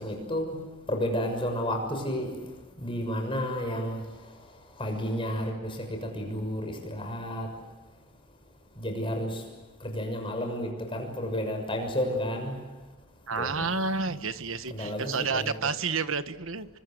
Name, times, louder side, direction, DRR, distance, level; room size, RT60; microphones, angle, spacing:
voice 1, 0.0-2.4 2.8-4.0 4.8-7.5 8.8-9.4 9.8-12.5 13.4-13.7 14.7-15.5, equal, 25° left, 6.5 m, -31 dB
voice 2, 13.3-16.7, right 4 dB, 65° right, 1.4 m, -30 dB
29.5 x 25.0 x 7.9 m
head